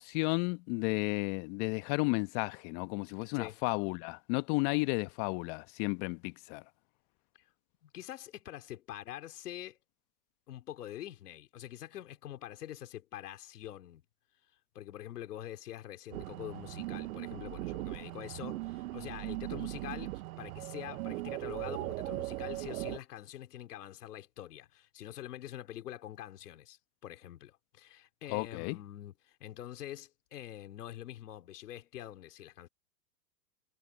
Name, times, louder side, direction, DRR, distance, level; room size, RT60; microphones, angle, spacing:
voice 1, 0.0-6.6 28.3-28.8, left 28 dB, 45° left, 1.3 m, -33 dB
voice 2, 7.8-9.8 10.5-14.0 14.7-32.7, left 12 dB, 75° left, 3.2 m, -45 dB
sound 1, 16.1-23.0, right 18 dB, 60° right, 0.9 m, -39 dB
hypercardioid pair, 115°, 47 cm